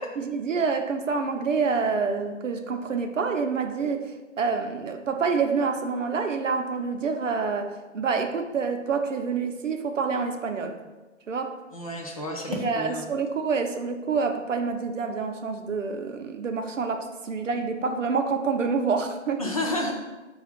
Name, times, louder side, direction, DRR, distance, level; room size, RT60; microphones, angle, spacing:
voice 1, 0.2-10.8 11.3-11.6 12.4-19.4, right 5 dB, 75° right, 5 dB, 0.6 m, -27 dB
voice 2, 11.7-13.1 19.4-19.9, left 1 dB, 30° left, 0 dB, 0.4 m, -30 dB
5.4 x 2.3 x 3.5 m, 1.2 s
figure-of-eight pair, 130°, 38 cm